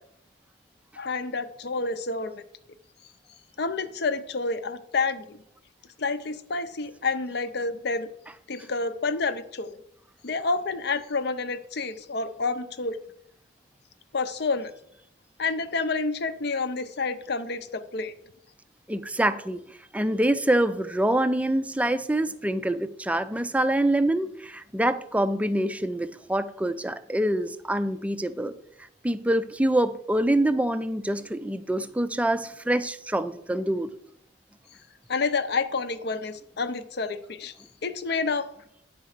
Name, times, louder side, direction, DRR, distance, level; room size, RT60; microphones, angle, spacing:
voice 1, 1.0-2.4 3.6-5.4 6.0-8.1 8.5-9.8 10.2-13.0 14.1-14.7 15.4-18.1 35.1-37.5 37.8-38.5, left 4 dB, 60° left, 0.7 m, -29 dB
voice 2, 18.9-19.6 19.9-28.5 29.0-33.9, right 1 dB, 5° right, 0.4 m, -25 dB
9.4 x 4.4 x 6.5 m
head